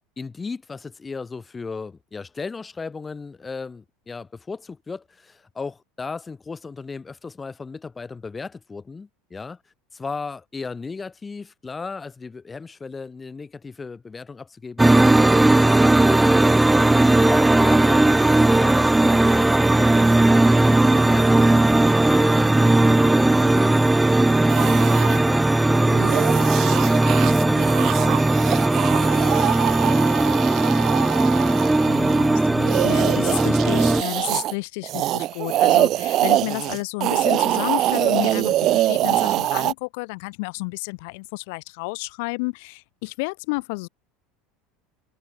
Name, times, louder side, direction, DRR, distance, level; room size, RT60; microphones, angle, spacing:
voice 1, 0.2-9.6 9.9-16.6 17.3-29.2, left 4 dB, 20° left, 3.0 m, -36 dB
sound 1, 14.8-34.0, right 2 dB, 10° right, 0.4 m, -17 dB
sound 2, 24.5-25.2 25.8-34.5 34.8-39.7, right 14 dB, 45° right, 1.0 m, -24 dB
voice 2, 31.8-43.9, left 30 dB, 60° left, 2.9 m, -31 dB
figure-of-eight pair, 70°, 0 cm